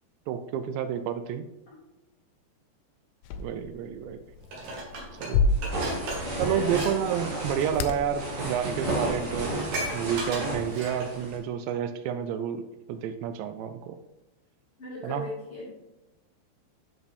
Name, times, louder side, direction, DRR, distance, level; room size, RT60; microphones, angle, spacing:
voice 1, 0.3-1.5 3.4-4.2 5.2-5.5 6.4-9.6 9.9-14.0 15.0-15.3, right 8 dB, 85° right, 9 dB, 2.9 m, -30 dB
sound 1, 3.2-10.3, left 3 dB, 80° left, 2.5 m, -33 dB
Dishes pots and pans, 4.5-6.9 7.2-7.5 8.3-8.4 8.7-8.8 9.0-11.2 11.7-11.8, right 2 dB, 55° right, 3.2 m, -36 dB
sound 2, 5.5-11.4, right 1 dB, 40° right, 2.8 m, -33 dB
voice 2, 5.9-6.7 14.8-15.7, equal, 40° left, -5 dB, 2.5 m, -38 dB
10.5 x 6.5 x 3.5 m, 0.97 s
omnidirectional pair, 5.1 m